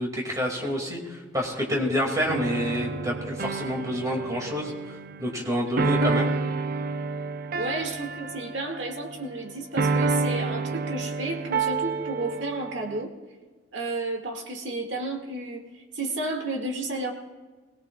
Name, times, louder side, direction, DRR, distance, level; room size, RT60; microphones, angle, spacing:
voice 1, 0.0-6.3, equal, 20° right, 0 dB, 2.2 m, -28 dB
sound 1, 2.3-9.5 9.8-13.0, right 4 dB, 50° right, 0.5 m, -29 dB
voice 2, 5.6-6.1 7.6-13.1 13.7-17.1, right 2 dB, 75° right, 2 dB, 2.0 m, -32 dB
22.0 x 17.5 x 2.3 m, 1.4 s
head